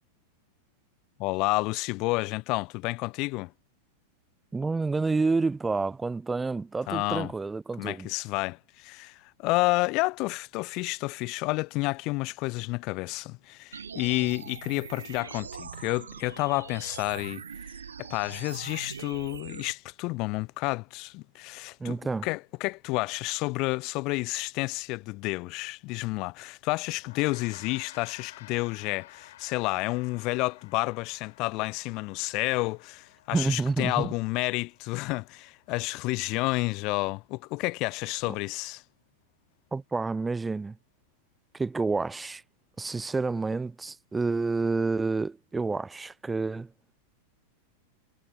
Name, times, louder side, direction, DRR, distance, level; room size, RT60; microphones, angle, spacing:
voice 1, 1.2-3.5 6.9-7.3 7.8-17.4 18.0-38.8, left 24 dB, 40° left, 0.6 m, -30 dB
voice 2, 4.5-8.1 21.8-22.3 33.3-34.1 39.7-40.8 41.5-42.4 42.8-46.7, right 3 dB, 10° right, 0.4 m, -29 dB
sound 1, 13.7-19.7, right 7 dB, 70° right, 0.9 m, -42 dB
Gong, 27.0-36.5, left 14 dB, 55° left, 5.1 m, -53 dB
figure-of-eight pair, 90°, 0 cm